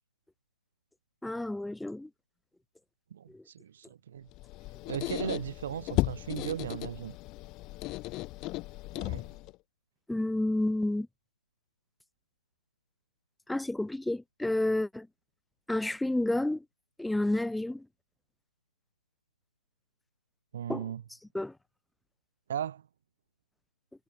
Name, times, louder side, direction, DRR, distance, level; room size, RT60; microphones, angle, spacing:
voice 1, 1.2-2.1 3.3-3.4 10.1-11.1 13.5-15.1 15.7-16.6 17.0-17.8 20.7-20.8 21.3-21.5, left 1 dB, ahead, 2.9 m, -30 dB
voice 2, 3.1-4.3 4.9-7.1 8.9-9.3 20.5-21.0 22.5-22.8, right 9 dB, 45° right, 2.9 m, -37 dB
Squeak, 4.3-9.6, left 21 dB, 20° left, 1.5 m, -35 dB
figure-of-eight pair, 145°, 0 cm